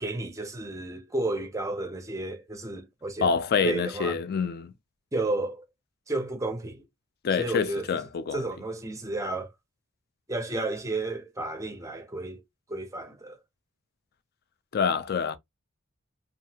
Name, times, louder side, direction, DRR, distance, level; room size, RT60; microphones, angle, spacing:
voice 1, 0.0-3.3 3.6-4.2 5.1-5.6 6.1-6.8 7.3-8.0 8.3-9.5 10.3-12.4 12.7-13.4, right 2 dB, 15° right, 0.5 m, -32 dB
voice 2, 3.2-4.7 7.2-8.4 14.7-15.4, left 6 dB, 45° left, 0.4 m, -26 dB
2.8 x 2.4 x 2.7 m
head